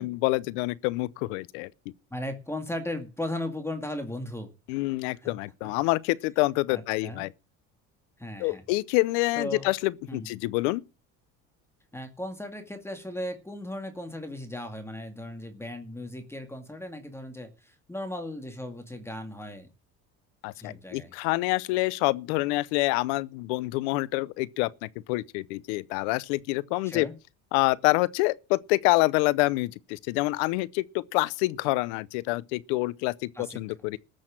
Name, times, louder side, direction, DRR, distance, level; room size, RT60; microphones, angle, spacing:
voice 1, 0.0-1.7 4.7-7.3 8.4-10.8 20.4-27.1 27.5-34.0, left 21 dB, 90° left, 0.7 m, -27 dB
voice 2, 2.1-4.5 5.2-5.3 6.7-7.3 8.2-8.6 9.4-9.7 10.1-10.3 11.9-19.7 20.6-21.1 26.8-27.1 33.3-33.6, left 1 dB, 5° left, 2.1 m, -36 dB
14.0 x 6.4 x 7.5 m
supercardioid pair, 105°, 34 cm